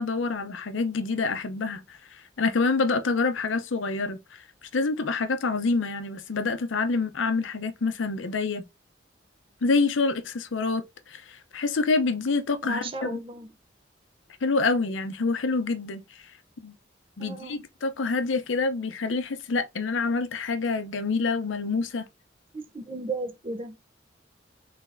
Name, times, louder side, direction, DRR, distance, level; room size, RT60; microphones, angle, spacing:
voice 1, 0.0-4.4 4.7-8.6 9.6-13.2 14.4-16.0 16.6-16.7 17.2-22.1, left 4 dB, 90° left, 0.6 m, -27 dB
voice 2, 12.6-13.5 17.2-17.6 22.5-23.8, right 3 dB, 30° right, 0.6 m, -35 dB
3.9 x 3.3 x 2.5 m
head